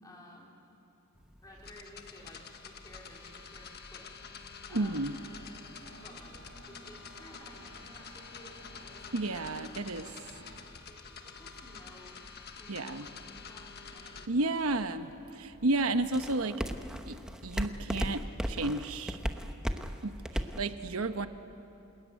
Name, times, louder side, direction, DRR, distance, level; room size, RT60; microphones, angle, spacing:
voice 1, 0.0-0.6 1.4-4.1 4.7-5.2 6.0-10.2 10.9-12.2 12.6-15.0, left 1 dB, 15° left, -2 dB, 4.0 m, -55 dB
sound 1, 1.1-20.6, equal, 5° right, 1.0 m, -42 dB
sound 2, 1.6-14.3, left 6 dB, 50° left, 1.4 m, -48 dB
voice 2, 4.7-5.1 9.1-10.1 12.7-13.0 14.3-16.6 17.1-17.2 17.4-19.2 20.0-21.3, right 2 dB, 80° right, 9 dB, 1.0 m, -32 dB
Engine, 4.8-10.6, right 1 dB, 60° right, 3.4 m, -55 dB
28.5 x 20.5 x 9.3 m, 2.9 s
head